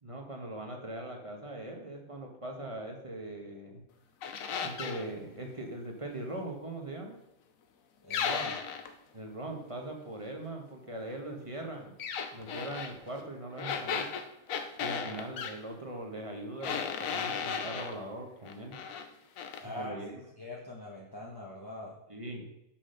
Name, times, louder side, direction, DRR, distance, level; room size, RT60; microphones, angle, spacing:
voice 1, 0.0-3.8 4.6-7.2 9.1-11.9 12.3-14.1 14.8-18.8 19.6-20.2 22.1-22.5, right 1 dB, 25° right, 2 dB, 1.3 m, -41 dB
sound 1, 4.2-5.1 8.1-8.9 12.0-12.9 13.6-15.6 16.6-18.0 18.4-19.1 19.4-19.6, left 6 dB, 80° left, 1.2 m, -35 dB
voice 2, 8.0-8.6 19.6-20.0 20.4-22.0, left 2 dB, 20° left, -3 dB, 1.0 m, -41 dB
6.2 x 5.9 x 6.5 m, 0.85 s
omnidirectional pair, 1.4 m